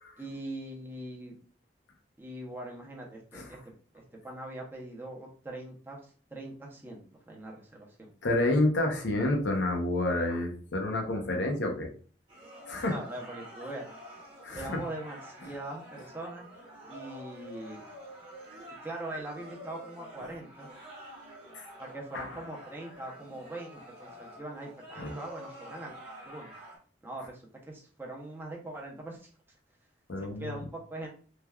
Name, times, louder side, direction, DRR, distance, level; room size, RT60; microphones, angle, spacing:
voice 1, 0.2-1.3 2.2-8.1 12.9-13.8 14.5-16.5 16.9-17.8 18.8-20.7 21.8-26.0 26.2-26.5 27.0-29.3 30.2-31.1, right 1 dB, 10° right, -1 dB, 0.6 m, -42 dB
voice 2, 8.2-11.9 12.7-12.9 14.4-14.8 21.5-21.7 22.1-22.3 25.0-25.1 30.1-30.6, left 2 dB, 75° left, 2 dB, 0.6 m, -29 dB
sound 1, 12.3-26.8, equal, 30° right, 0.9 m, -48 dB
3.2 x 2.2 x 2.2 m, 0.42 s
head